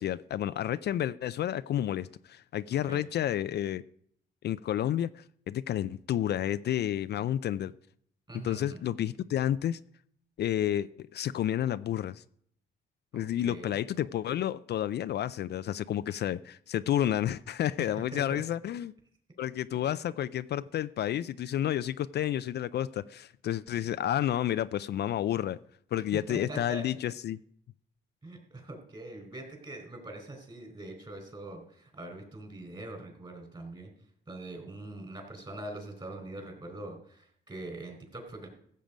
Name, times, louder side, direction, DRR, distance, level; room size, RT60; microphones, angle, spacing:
voice 1, 0.0-3.8 4.4-7.7 8.4-9.8 10.4-12.2 13.1-18.9 19.4-25.6 25.9-27.4, left 11 dB, 55° left, 14 dB, 0.4 m, -30 dB
voice 2, 8.3-8.8 13.4-13.8 16.1-16.2 17.8-18.4 26.1-26.9 28.2-33.9 34.3-38.5, right 2 dB, 25° right, 4 dB, 4.2 m, -43 dB
14.5 x 7.6 x 5.1 m, 0.67 s
cardioid pair, 90°, 20 cm